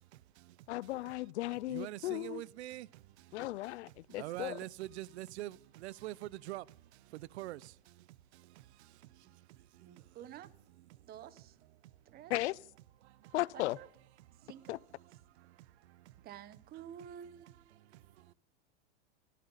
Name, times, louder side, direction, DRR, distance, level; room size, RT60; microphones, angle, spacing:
voice 1, 0.0-1.1 1.7-10.2 10.8-11.1 11.8-12.3 13.0-13.3 14.2-16.3 17.7-18.3, right 16 dB, 75° right, 0.7 m, -48 dB
voice 2, 0.7-2.4 3.3-4.6 12.3-12.6 13.3-13.8 14.7-14.8, left 17 dB, 80° left, 0.6 m, -36 dB
voice 3, 9.8-10.5 11.1-11.6 12.1-12.3 13.5-13.9 14.4-14.7 16.1-18.3, right 10 dB, 30° right, 1.0 m, -51 dB
27.0 x 13.0 x 4.1 m
supercardioid pair, 145°, 33 cm